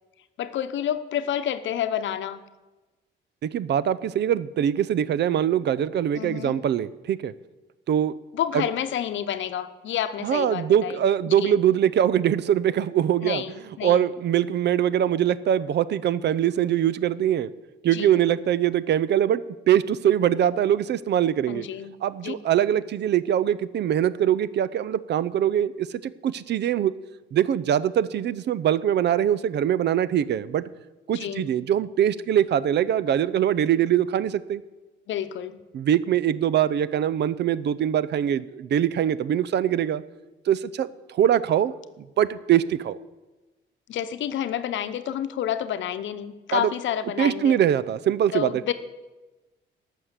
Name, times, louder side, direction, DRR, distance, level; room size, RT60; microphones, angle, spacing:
voice 1, 0.4-2.4 6.1-6.6 8.3-11.6 13.2-14.1 17.9-18.3 21.5-22.0 22.2-22.3 31.1-31.5 35.1-35.6 43.9-47.6 48.3-48.7, left 10 dB, 70° left, 11 dB, 0.8 m, -29 dB
voice 2, 3.4-7.3 7.9-8.1 8.5-8.6 10.2-13.4 13.8-17.5 17.8-19.4 19.7-21.7 22.0-26.9 27.3-30.7 31.1-34.6 35.7-40.0 40.5-41.7 42.2-43.0 46.5-46.7 47.2-48.5, right 10 dB, 60° right, 18 dB, 0.5 m, -23 dB
12.0 x 6.4 x 8.1 m, 1.1 s
cardioid pair, 90°, 20 cm